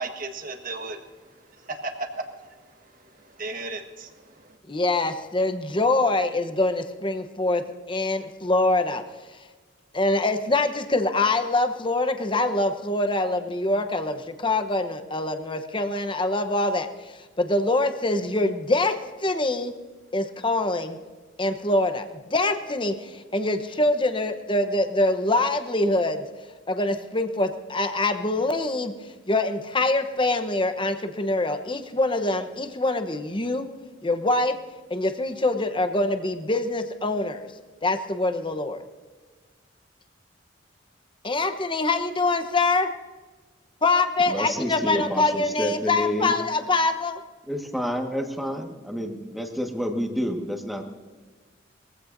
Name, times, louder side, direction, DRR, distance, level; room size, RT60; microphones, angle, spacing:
voice 1, 0.0-4.6, right 3 dB, 50° right, 4 dB, 1.4 m, -36 dB
voice 2, 4.7-7.6 7.9-9.0 9.9-19.0 19.2-19.7 20.1-21.0 21.4-26.2 26.7-28.9 29.3-33.7 34.0-34.6 34.9-37.5 37.8-38.8 41.2-42.9 43.8-47.2, left 2 dB, 25° left, 8 dB, 0.9 m, -24 dB
voice 3, 44.3-46.3 47.5-50.8, equal, ahead, 2 dB, 1.5 m, -29 dB
22.0 x 15.5 x 2.7 m, 1.4 s
head